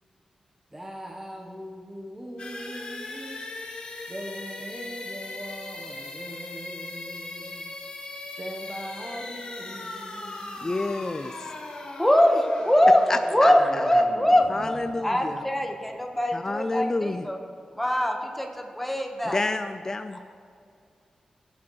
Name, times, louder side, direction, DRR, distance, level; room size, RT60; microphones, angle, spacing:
voice 1, 0.7-3.4 4.1-7.7 8.4-11.5, equal, 15° right, 0 dB, 0.9 m, -41 dB
sound 1, 2.4-16.1, left 2 dB, 50° left, 1.6 m, -39 dB
voice 2, 10.6-11.5 13.1-13.8 14.5-15.4 16.3-17.3 19.3-20.2, left 2 dB, 25° left, 8 dB, 0.3 m, -29 dB
voice 3, 12.0-13.0 13.3-14.5 15.0-17.4 17.7-19.4, left 1 dB, 5° left, 3 dB, 1.1 m, -22 dB
16.5 x 8.4 x 3.1 m, 2.4 s
wide cardioid pair, 125°, 2 cm